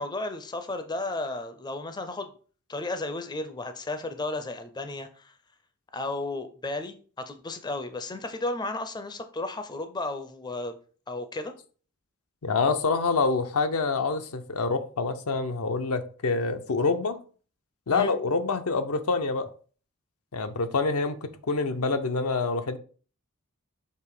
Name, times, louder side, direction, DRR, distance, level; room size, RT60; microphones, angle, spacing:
voice 1, 0.0-2.3 2.7-5.3 5.9-10.8 11.1-11.5 17.9-18.1, left 2 dB, 20° left, 0.5 m, -33 dB
voice 2, 12.4-17.2 17.9-19.5 20.3-22.8, left 4 dB, 75° left, 0.7 m, -26 dB
6.8 x 2.9 x 4.8 m
head